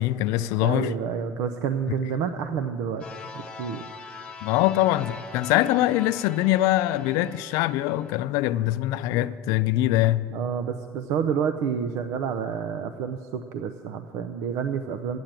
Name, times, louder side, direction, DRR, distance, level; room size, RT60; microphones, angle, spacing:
voice 1, 0.0-0.9 4.4-10.3, left 15 dB, 85° left, 0.4 m, -23 dB
voice 2, 0.6-3.0 3.3-3.9 10.3-15.2, right 7 dB, 70° right, 0.6 m, -29 dB
sound 1, 3.0-8.2, left 4 dB, 15° left, 0.9 m, -42 dB
13.0 x 9.3 x 8.9 m
cardioid pair, 170°, 6 cm